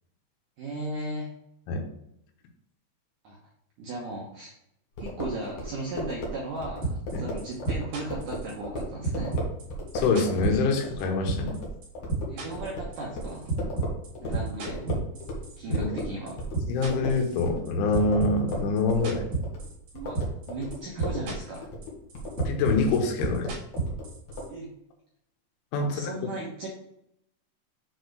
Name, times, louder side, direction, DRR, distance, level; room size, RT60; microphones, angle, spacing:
voice 1, 0.6-1.3 3.2-3.4 3.8-4.5 5.0-9.4 12.3-13.5 14.2-15.0 15.6-16.3 19.9-20.2 20.5-21.7 24.5-24.7 25.8-26.7, right 2 dB, 75° right, -3 dB, 1.9 m, -36 dB
sound 1, 5.0-15.5 15.7-24.5, equal, 60° left, 2.1 m, -36 dB
sound 2, 6.8-7.1 7.4-8.8 9.0-11.0 11.3-11.6 11.8-16.0 16.3-17.7 17.9-19.9 20.2-20.5 20.7-21.6 21.8-24.4, right 4 dB, 50° right, 2.9 m, -30 dB
voice 2, 9.9-11.6 15.7-16.0 16.7-19.3 22.5-23.5 25.7-26.1, left 3 dB, 85° left, 3 dB, 3.6 m, -25 dB
7.4 x 4.6 x 4.7 m, 0.77 s
omnidirectional pair, 5.4 m